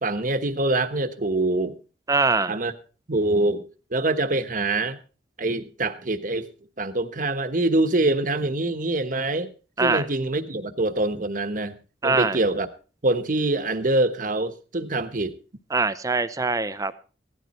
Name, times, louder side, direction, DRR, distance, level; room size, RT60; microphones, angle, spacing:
voice 1, 0.0-1.8 2.5-2.7 3.1-3.7 3.9-5.0 5.4-6.5 6.8-9.5 9.8-12.7 13.0-15.4, right 2 dB, 45° right, 1.2 m, -24 dB
voice 2, 2.1-2.6 9.8-10.0 12.0-12.4 15.7-16.9, right 3 dB, 20° right, 0.6 m, -23 dB
16.0 x 12.5 x 4.3 m
head